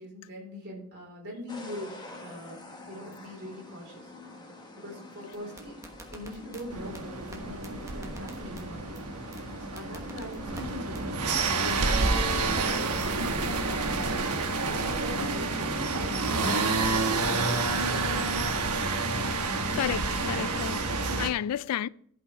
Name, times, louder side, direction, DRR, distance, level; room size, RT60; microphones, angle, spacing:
voice 1, 0.0-2.6 2.9-4.1 4.7-5.7 6.1-8.9 9.6-11.1 11.4-13.8 14.6-17.3 17.7-18.2, equal, 50° right, 3.9 m, -42 dB
sound 1, 1.5-14.2, left 1 dB, 20° left, 1.4 m, -48 dB
sound 2, 5.3-6.6 6.9-7.0 7.3-7.4 7.6-8.6 8.9-9.0 9.3-9.4 9.8-10.6 10.9-11.0 11.3-11.4 11.7-12.6 12.9-13.3, right 1 dB, 15° right, 1.1 m, -44 dB
sound 3, 6.7-21.3, right 3 dB, 90° right, 1.1 m, -29 dB
voice 2, 19.8-21.9, left 10 dB, 85° left, 0.3 m, -32 dB
11.5 x 5.6 x 5.0 m
head